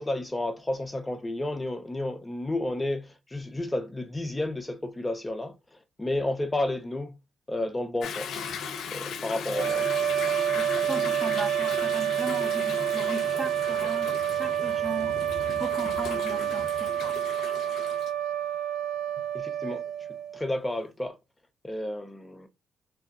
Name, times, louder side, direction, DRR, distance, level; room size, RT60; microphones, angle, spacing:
voice 1, 0.0-5.5 6.0-7.1 7.5-8.6 8.9-9.9 19.3-19.8 20.3-21.2 21.6-22.5, left 1 dB, 15° left, 0.4 m, -31 dB
Toilet flush / Drip / Trickle dribble, 8.0-18.1, left 6 dB, 70° left, 0.5 m, -37 dB
sound 1, 9.5-20.5, right 10 dB, 70° right, 0.5 m, -28 dB
voice 2, 10.5-15.1 15.6-17.1, right 2 dB, 35° right, 0.7 m, -37 dB
2.6 x 2.2 x 3.6 m
cardioid pair, 90°, 0 cm